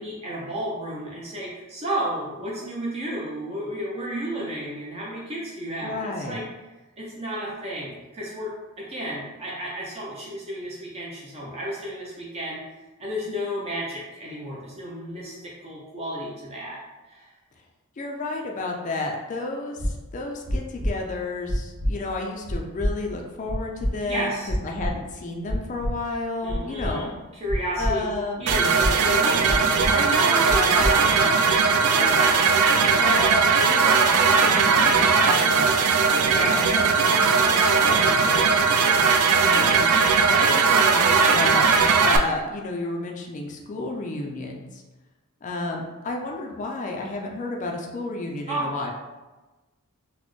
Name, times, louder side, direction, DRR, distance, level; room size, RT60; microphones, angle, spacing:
voice 1, 0.0-6.5 7.0-12.7 13.0-17.3 24.1-24.5 26.4-27.1 27.3-28.1 28.4-31.4 36.4-36.7 48.5-48.7, equal, 30° right, -4 dB, 0.5 m, -32 dB
voice 2, 5.8-6.4 18.0-24.4 24.6-27.1 27.8-28.4 30.5-31.1 31.9-32.5 33.0-35.8 36.3-38.6 39.4-41.6 42.0-44.8 45.4-48.9, left 2 dB, 35° left, 1 dB, 0.3 m, -32 dB
sound 1, 19.8-19.9 20.4-20.9 21.4-21.9 22.4-22.9 23.4-23.9 24.4-24.9 25.4-25.9 26.4-26.9 27.4-27.9 28.4-28.9 29.4-29.9 30.4-30.9, equal, 65° right, 0.8 m, -26 dB
sound 2, 28.5-42.2, right 5 dB, 85° right, 0.4 m, -19 dB
4.0 x 2.1 x 3.0 m, 1.1 s
head